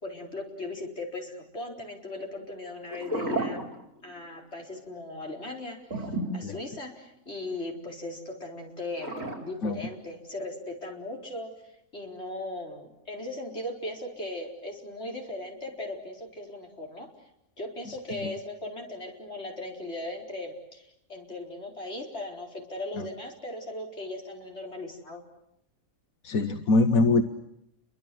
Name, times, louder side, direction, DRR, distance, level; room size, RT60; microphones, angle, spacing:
voice 1, 0.0-3.7 4.0-6.1 6.3-11.5 11.9-17.1 17.6-25.2, left 2 dB, 50° left, 0 dB, 4.8 m, -38 dB
sound 1, 2.9-4.3 4.6-4.8 5.9-7.2 9.0-9.4, right 1 dB, 65° right, 5.1 m, -32 dB
voice 2, 26.2-27.2, left 3 dB, 75° left, 8 dB, 1.6 m, -23 dB
30.0 x 24.0 x 7.7 m, 0.82 s
omnidirectional pair, 1.5 m